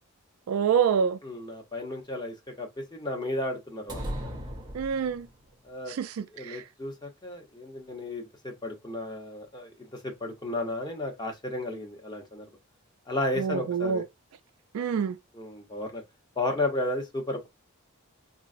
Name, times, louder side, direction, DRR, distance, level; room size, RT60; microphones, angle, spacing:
voice 1, 0.5-1.2 4.7-5.3 6.0-6.6 13.4-14.0 14.7-15.2, right 7 dB, 75° right, 0.3 m, -26 dB
voice 2, 1.2-4.2 5.6-5.9 6.3-12.5 13.1-14.0 15.3-16.0 16.4-17.5, left 1 dB, 20° left, 0.7 m, -33 dB
sound 1, 3.9-5.5, equal, 20° right, 0.6 m, -37 dB
3.7 x 2.0 x 2.4 m
head